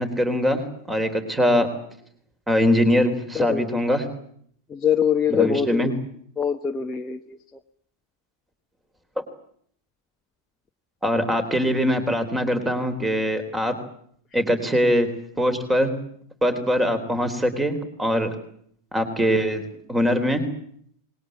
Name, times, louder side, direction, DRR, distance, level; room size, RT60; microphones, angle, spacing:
voice 1, 0.0-1.7 2.5-4.0 5.3-5.9 9.2-9.3 11.0-13.7 14.3-15.1 15.4-15.9 16.4-18.3 18.9-19.6 19.9-20.4, equal, 10° right, 10 dB, 3.7 m, -22 dB
voice 2, 4.7-5.9 6.4-7.4, left 8 dB, 15° left, 3 dB, 1.1 m, -23 dB
26.5 x 21.0 x 8.7 m, 0.65 s
figure-of-eight pair, 90°, 0 cm